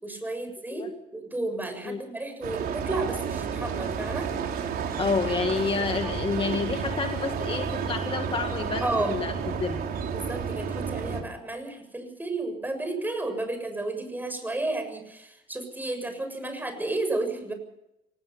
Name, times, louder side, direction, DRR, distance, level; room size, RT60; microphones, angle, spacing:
voice 1, 0.0-4.3 6.0-6.1 8.8-9.2 10.1-17.5, right 2 dB, 10° right, 6 dB, 7.0 m, -32 dB
sound 1, 2.4-11.2, right 6 dB, 65° right, 4.3 m, -31 dB
voice 2, 5.0-9.3 9.6-9.9, left 5 dB, 30° left, 6 dB, 1.9 m, -29 dB
25.5 x 19.5 x 5.7 m, 0.85 s
cardioid pair, 110°, 17 cm